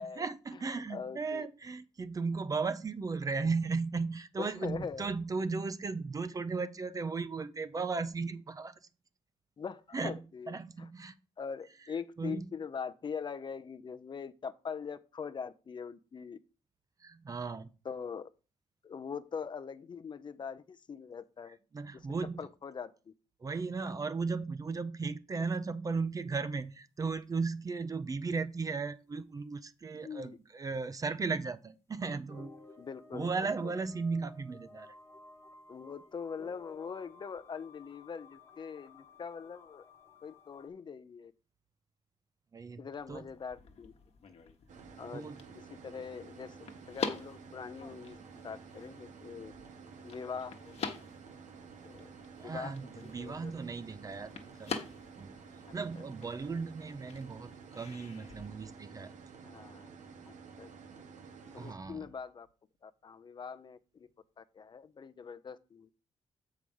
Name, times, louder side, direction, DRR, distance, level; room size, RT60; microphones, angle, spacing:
voice 1, 0.0-8.8 9.9-10.2 10.5-11.2 12.2-12.5 17.0-17.7 21.7-22.4 23.4-32.6 33.1-34.9 42.5-43.2 45.1-45.4 52.4-54.3 54.6-54.8 55.1-55.4 55.7-59.1 61.6-62.1, right 4 dB, 30° right, 0.5 m, -36 dB
voice 2, 0.9-1.5 4.4-5.1 9.6-10.9 11.4-16.4 17.8-18.3 18.8-21.6 21.9-22.1 22.4-23.1 29.9-30.4 32.8-33.7 35.7-39.8 40.2-41.3 42.8-43.9 45.0-45.3 45.5-46.6 46.9-48.2 48.4-49.5 50.0-51.0 51.8-52.1 52.4-53.5 55.9-56.0 59.4-59.9 60.6-60.7 61.5-62.5 62.8-64.1 64.4-65.9, left 6 dB, 40° left, 0.5 m, -42 dB
sound 1, 32.3-40.7, left 3 dB, 20° left, 1.0 m, -55 dB
sound 2, 43.0-58.5, left 5 dB, 60° left, 1.1 m, -46 dB
sound 3, 44.7-61.7, right 5 dB, 85° right, 1.1 m, -51 dB
7.4 x 4.8 x 5.3 m
wide cardioid pair, 135°, 12 cm